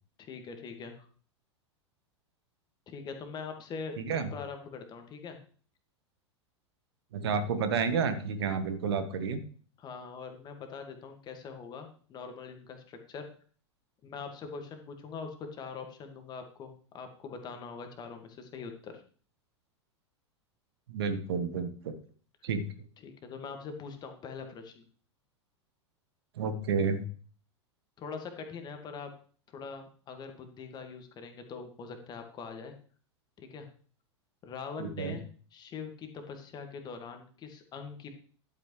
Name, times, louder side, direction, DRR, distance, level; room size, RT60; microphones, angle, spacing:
voice 1, 0.2-1.1 2.9-5.4 9.8-13.3 14.0-19.0 23.0-24.9 28.0-29.1 29.5-32.7 33.4-33.7 34.4-35.2 35.5-38.1, left 5 dB, 25° left, 5 dB, 1.8 m, -43 dB
voice 2, 4.0-4.3 7.1-9.4 20.9-21.9 22.4-22.7 26.4-27.1 34.8-35.2, right 5 dB, 60° right, 9 dB, 1.3 m, -30 dB
11.5 x 8.2 x 3.2 m, 0.43 s
figure-of-eight pair, 90°, 15 cm